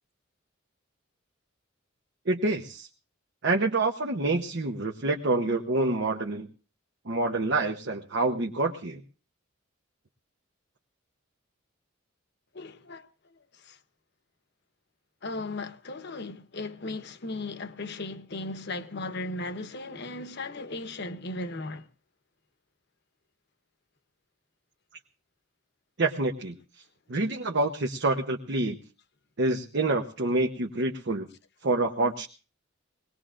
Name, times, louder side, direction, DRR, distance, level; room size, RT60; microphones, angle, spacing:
voice 1, 2.3-2.9 3.4-6.5 7.1-9.0 26.0-26.5 27.1-28.8 29.4-31.3 31.6-32.3, right 2 dB, 60° right, 0.9 m, -27 dB
voice 2, 12.5-13.1 13.5-13.8 15.2-21.9, left 2 dB, 55° left, 1.0 m, -36 dB
21.0 x 19.0 x 2.5 m
head